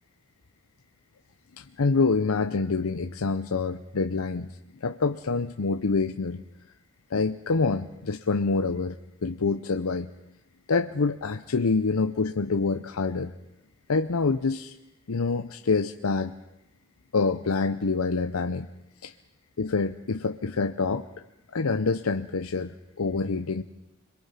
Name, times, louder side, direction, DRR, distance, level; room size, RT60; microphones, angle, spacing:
voice 1, 1.6-4.5 4.8-6.4 7.1-10.1 10.7-13.3 13.9-14.7 15.1-16.3 17.1-18.7 19.0-19.1 19.6-21.1 21.5-23.6, left 4 dB, 85° left, 8 dB, 0.7 m, -26 dB
26.5 x 22.5 x 5.8 m, 0.91 s
head